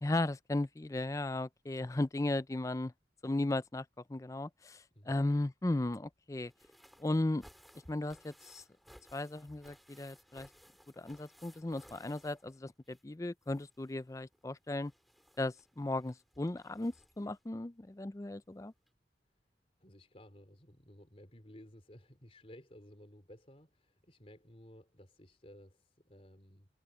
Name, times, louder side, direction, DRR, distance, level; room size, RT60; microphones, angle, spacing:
voice 1, 0.0-2.9 3.2-3.8 4.1-6.5 7.0-7.4 7.9-8.6 9.1-10.5 11.0-14.9 15.4-18.7, left 2 dB, 20° left, 0.4 m, -36 dB
sound 1, 6.4-13.1 13.4-17.4 18.4-18.5 18.9-19.0, equal, ahead, 3.6 m, -61 dB
voice 2, 19.8-26.7, equal, 35° left, 3.9 m, -56 dB
head